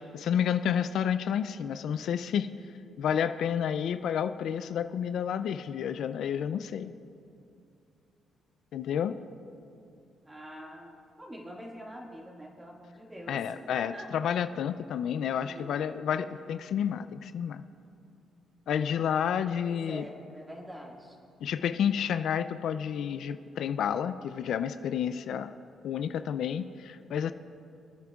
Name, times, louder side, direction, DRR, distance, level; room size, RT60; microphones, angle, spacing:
voice 1, 0.0-2.5 3.0-6.9 8.7-9.2 13.3-17.6 18.7-20.1 21.4-25.5 25.8-27.3, left 8 dB, 70° left, 11 dB, 0.3 m, -30 dB
voice 2, 10.2-14.1 15.2-15.9 16.2-16.5 19.6-21.2, equal, 15° right, -1 dB, 1.9 m, -45 dB
25.5 x 9.6 x 2.4 m, 2.5 s
cardioid pair, 90°, 0 cm